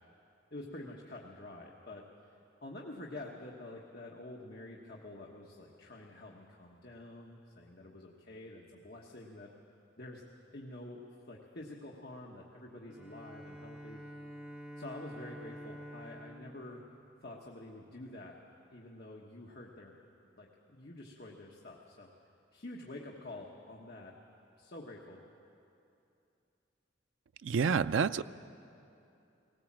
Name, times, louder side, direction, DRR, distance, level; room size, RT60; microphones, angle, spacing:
voice 1, 0.5-2.0 2.6-9.5 10.0-10.3 10.5-14.0 14.8-16.8 17.2-18.4 18.7-20.0 20.3-22.1 22.5-24.1 24.6-25.2, left 1 dB, 50° left, -2 dB, 1.3 m, -48 dB
Bowed string instrument, 12.9-17.7, equal, 10° right, 1.8 m, -49 dB
voice 2, 27.4-28.2, right 6 dB, 80° right, 13 dB, 0.4 m, -28 dB
19.5 x 18.0 x 7.4 m, 2.7 s
head